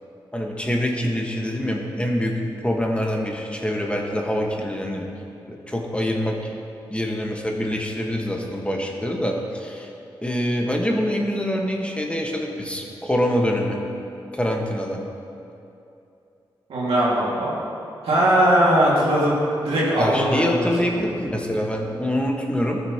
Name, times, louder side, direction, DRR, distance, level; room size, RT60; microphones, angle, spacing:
voice 1, 0.3-5.1 5.5-6.4 6.9-9.9 10.2-13.8 14.3-15.0 20.0-22.8, equal, 10° left, 0 dB, 1.4 m, -25 dB
voice 2, 16.7-17.5 18.0-19.3 19.6-20.9, right 1 dB, 90° right, -6 dB, 2.1 m, -20 dB
13.5 x 6.5 x 3.0 m, 2.7 s
supercardioid pair, 45°, 9 cm